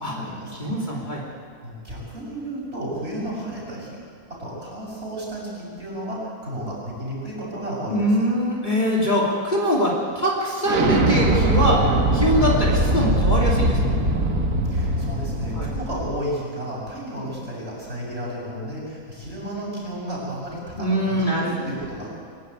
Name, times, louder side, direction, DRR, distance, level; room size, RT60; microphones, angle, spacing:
voice 1, 0.1-0.7 1.6-4.0 4.4-8.1 14.7-22.2, right 1 dB, 45° right, -5 dB, 7.3 m, -32 dB
voice 2, 0.6-1.2 7.9-14.0 15.5-15.7 20.8-21.7 22.1-22.2, equal, 30° left, -4 dB, 3.0 m, -23 dB
Explosion, 10.6-16.2, right 1 dB, 65° right, 1.9 m, -21 dB
23.5 x 12.0 x 9.5 m, 2.2 s
omnidirectional pair, 1.5 m